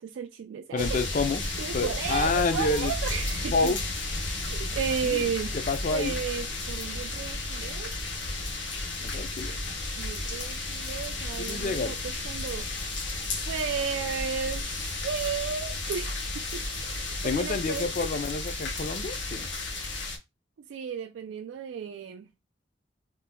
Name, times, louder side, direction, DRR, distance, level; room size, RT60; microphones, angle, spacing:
voice 1, 0.0-1.0 1.4-3.7 4.5-5.5 5.9-7.9 10.0-12.7 13.5-17.9 20.7-22.3, right 7 dB, 80° right, 0.3 m, -34 dB
voice 2, 0.7-1.4 1.7-2.9 3.5-3.8 5.0-5.2 5.5-6.2 9.0-9.6 11.4-12.0 17.2-19.5, left 3 dB, 45° left, 0.4 m, -28 dB
sound 1, 0.8-20.2, left 2 dB, 75° left, 0.8 m, -33 dB
2.7 x 2.1 x 3.5 m
head